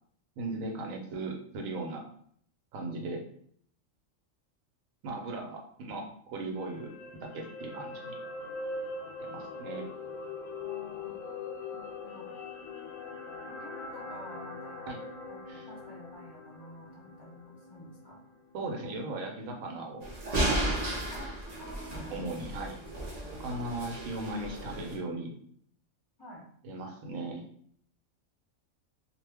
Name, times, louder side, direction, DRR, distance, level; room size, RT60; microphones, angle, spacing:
voice 1, 0.4-2.0 2.7-3.2 5.0-6.9 7.2-8.2 9.3-9.9 14.9-15.0 15.5-15.7 18.5-20.1 22.1-22.8 23.4-25.3 26.6-27.5, right 2 dB, 85° right, 1 dB, 1.1 m, -37 dB
sound 1, 6.5-18.8 19.2-19.3, left 3 dB, 90° left, 1.0 m, -42 dB
voice 2, 10.6-11.1 11.7-12.3 13.5-14.9 15.3-18.2 21.1-22.1 23.5-23.7 26.2-26.4, left 1 dB, 25° left, -3 dB, 0.6 m, -49 dB
sound 2, 20.0-25.0, right 1 dB, 40° right, 0.6 m, -34 dB
2.4 x 2.1 x 3.3 m, 0.62 s
omnidirectional pair, 1.4 m